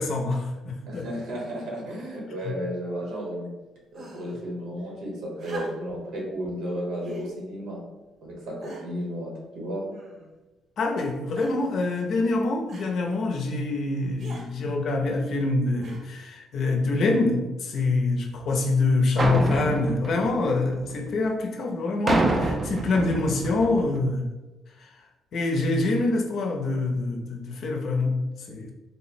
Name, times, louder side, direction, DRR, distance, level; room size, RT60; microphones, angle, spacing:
voice 1, 0.0-1.0 2.4-2.5 10.8-24.4 24.8-25.0 25.3-28.7, left 2 dB, 60° left, 1 dB, 0.6 m, -25 dB
voice 2, 0.9-3.5 3.9-7.8 8.2-9.8, equal, 90° right, -2 dB, 1.1 m, -33 dB
sound 1, 3.9-4.4 5.4-6.0 7.0-7.3 8.0-8.1 8.6-9.1 9.9-10.4 11.4-11.7 12.7-12.9 14.2-14.5 15.8-16.3 17.3-17.4, right 2 dB, 50° right, 0.8 m, -44 dB
sound 2, 19.2-21.1 22.1-24.0, right 2 dB, 30° right, 0.4 m, -27 dB
3.3 x 2.0 x 4.2 m, 1.1 s
cardioid pair, 125°, 0 cm